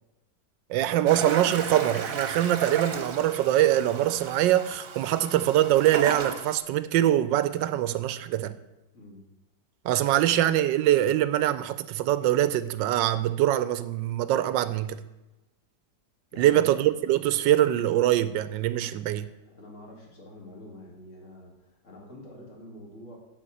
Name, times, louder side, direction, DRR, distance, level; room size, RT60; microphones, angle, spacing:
voice 1, 0.7-8.5 9.8-15.0 16.4-19.3, right 13 dB, 85° right, 1.3 m, -23 dB
Toilet flush, 1.1-6.6, right 5 dB, 55° right, 1.3 m, -35 dB
voice 2, 8.9-9.3 16.3-16.6 18.8-23.2, left 1 dB, 45° left, 2.8 m, -47 dB
10.0 x 4.5 x 7.7 m
omnidirectional pair, 1.9 m